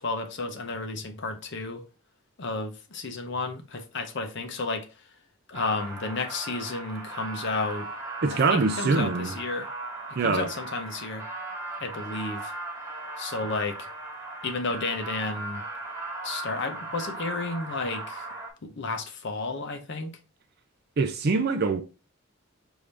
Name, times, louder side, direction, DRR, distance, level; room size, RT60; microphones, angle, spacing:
voice 1, 0.0-1.8 2.4-4.9 5.5-7.9 8.3-9.7 10.2-11.2 11.8-12.5 13.2-13.8 14.4-15.6 16.2-18.3 18.6-20.1, left 3 dB, 55° left, 0.8 m, -32 dB
sound 1, 5.5-18.5, right 2 dB, 15° right, 1.1 m, -37 dB
voice 2, 8.2-9.3 10.2-10.5 21.0-21.8, right 4 dB, 50° right, 0.4 m, -24 dB
4.8 x 2.7 x 3.3 m
head